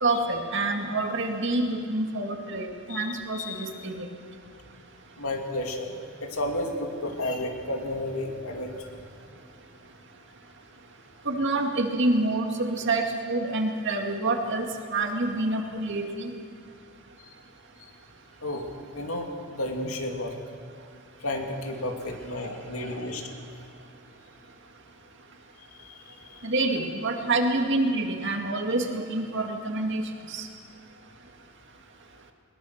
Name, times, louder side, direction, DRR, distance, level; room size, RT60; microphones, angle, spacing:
voice 1, 0.0-4.1 11.3-16.3 26.4-30.5, right 2 dB, 60° right, 3 dB, 2.1 m, -27 dB
voice 2, 2.9-3.7 5.2-5.9 6.2-8.9 17.8-17.9 18.4-18.7 18.9-20.4 21.2-23.3 25.8-26.5, left 1 dB, 85° left, 3 dB, 2.7 m, -32 dB
21.0 x 21.0 x 6.6 m, 2.4 s
head